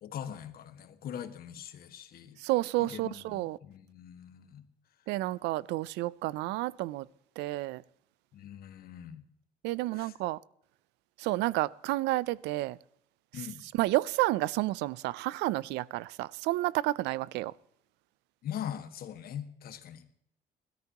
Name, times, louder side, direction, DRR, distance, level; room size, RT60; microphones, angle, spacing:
voice 1, 0.0-2.4 2.8-4.6 8.3-9.2 9.9-10.1 13.3-13.6 18.4-20.2, left 9 dB, 65° left, 1.6 m, -42 dB
voice 2, 2.4-3.6 5.1-7.1 7.4-7.8 9.6-10.4 11.2-12.8 13.7-17.5, right 18 dB, 90° right, 0.4 m, -30 dB
21.5 x 13.5 x 2.9 m
cardioid pair, 110°, 17 cm